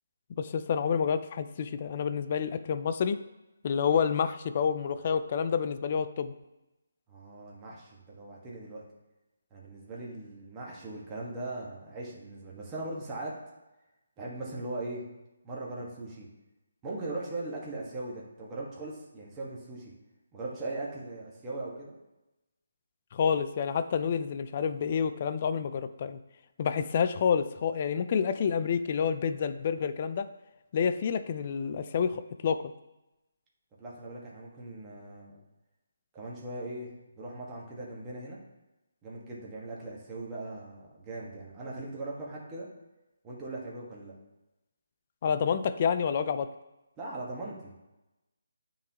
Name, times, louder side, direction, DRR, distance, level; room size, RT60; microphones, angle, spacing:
voice 1, 0.4-3.2 3.6-6.3 23.1-26.2 26.6-30.3 30.7-32.6 45.2-46.5, left 7 dB, 40° left, 11 dB, 0.4 m, -28 dB
voice 2, 7.1-8.8 9.5-13.4 14.2-15.0 15.4-16.3 16.8-19.9 20.3-21.9 33.8-35.4 36.1-38.4 39.0-42.7 43.2-44.1 47.0-47.9, right 2 dB, 20° right, -4 dB, 1.4 m, -39 dB
9.4 x 3.8 x 2.9 m, 0.98 s
figure-of-eight pair, 155°, 0 cm